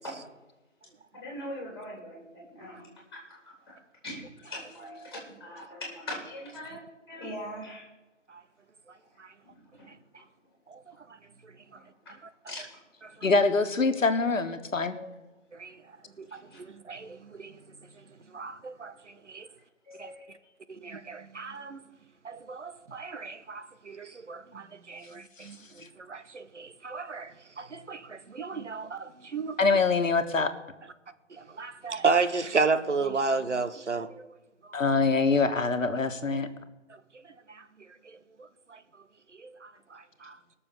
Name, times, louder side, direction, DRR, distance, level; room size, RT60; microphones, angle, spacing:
voice 1, 1.1-2.8 3.1-3.8 4.0-4.2 4.5-7.9 9.4-9.9 11.7-11.8 12.5-12.8 13.2-13.3 14.9-15.2 16.3-16.6 19.8-20.2, left 1 dB, 20° left, 3.3 m, -41 dB
voice 2, 13.2-15.0 25.4-25.5 29.6-30.5 34.7-36.5, left 4 dB, 85° left, 1.4 m, -24 dB
voice 3, 16.2-17.6 18.3-18.9 19.3-19.5 20.0-20.1 20.7-21.8 22.2-25.6 26.0-29.8 31.3-34.3 37.5-37.6 38.4-38.8 39.4-40.4, right 4 dB, 65° right, 1.0 m, -33 dB
18.0 x 6.8 x 6.8 m
figure-of-eight pair, 175°, 38 cm